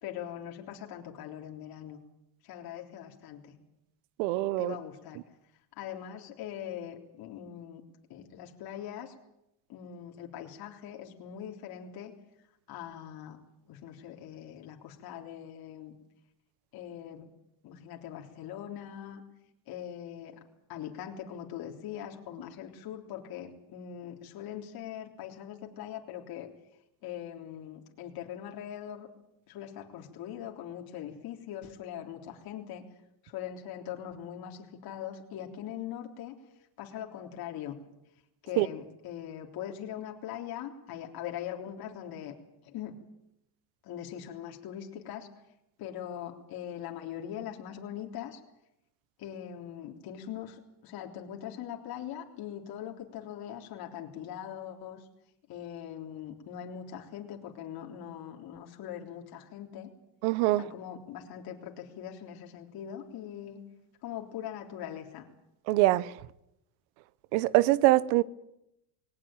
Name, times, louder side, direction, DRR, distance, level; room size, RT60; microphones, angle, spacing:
voice 1, 0.0-2.0 2.4-3.6 4.6-5.2 5.8-7.8 8.1-9.1 9.7-12.2 12.7-13.4 13.7-16.0 16.7-17.3 17.6-19.2 19.7-20.4 20.7-26.5 27.0-29.1 29.5-32.8 33.2-36.4 36.8-37.8 38.4-42.3 42.6-43.0 43.8-45.3 45.8-48.4 49.2-55.0 55.5-59.9 60.6-63.6 64.0-65.3, left 10 dB, 50° left, 3.6 m, -41 dB
voice 2, 4.2-4.7 38.6-38.7 60.2-60.6 65.7-66.1 67.3-68.2, right 17 dB, 75° right, 1.1 m, -24 dB
20.5 x 19.0 x 9.1 m
supercardioid pair, 125°, 45 cm